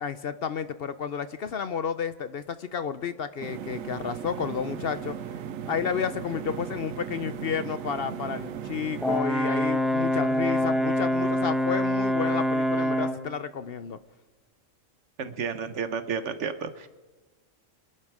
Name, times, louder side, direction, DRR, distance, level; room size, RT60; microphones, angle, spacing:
voice 1, 0.0-5.1 5.7-14.0, left 7 dB, 55° left, 13 dB, 0.8 m, -31 dB
sound 1, 3.4-9.2, right 8 dB, 85° right, 1.1 m, -37 dB
Brass instrument, 9.0-13.2, equal, ahead, 1.0 m, -25 dB
voice 2, 15.2-16.9, right 6 dB, 65° right, 11 dB, 1.3 m, -31 dB
27.0 x 11.0 x 4.8 m, 1.3 s
omnidirectional pair, 1.3 m